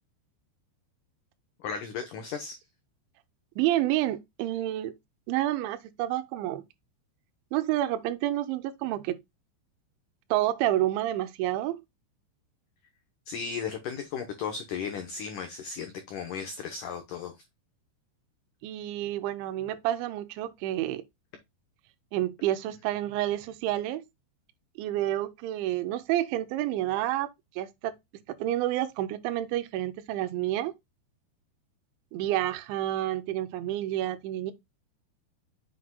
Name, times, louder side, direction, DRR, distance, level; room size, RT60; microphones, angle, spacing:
voice 1, 1.6-2.6 13.3-17.4, left 6 dB, 90° left, 1.8 m, -35 dB
voice 2, 3.6-4.9 5.3-6.6 7.5-9.2 10.3-11.8 18.6-21.0 22.1-24.1 24.8-27.3 27.6-27.9 28.4-30.7 32.1-34.5, right 14 dB, 85° right, 3.1 m, -29 dB
7.7 x 6.1 x 2.3 m
omnidirectional pair, 5.3 m